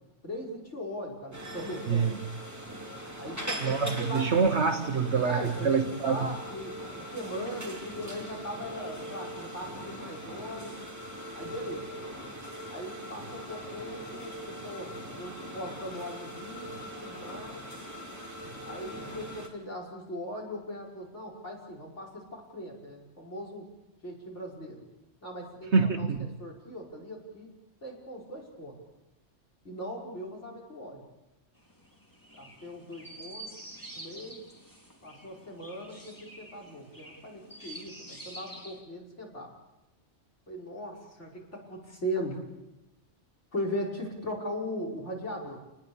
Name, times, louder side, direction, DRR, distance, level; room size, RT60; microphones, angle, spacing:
voice 1, 0.2-2.1 3.2-4.3 5.3-6.7 7.1-10.8 11.3-11.9 12.7-17.7 18.7-23.7 24.0-24.8 25.2-26.1 26.4-27.5 27.8-28.7 29.6-31.0 32.4-33.5 34.0-34.4 35.0-39.5 40.5-42.4 43.5-45.6, equal, 70° left, -2 dB, 5.7 m, -39 dB
sound 1, 1.3-19.5, equal, 15° right, 3.1 m, -41 dB
voice 2, 1.9-2.2 3.6-6.3 25.7-26.3, right 5 dB, 65° right, 6 dB, 1.3 m, -26 dB
Chirp tweet, 31.6-38.8, right 1 dB, 15° left, 3.5 m, -48 dB
29.0 x 20.5 x 7.1 m, 0.97 s
omnidirectional pair, 1.2 m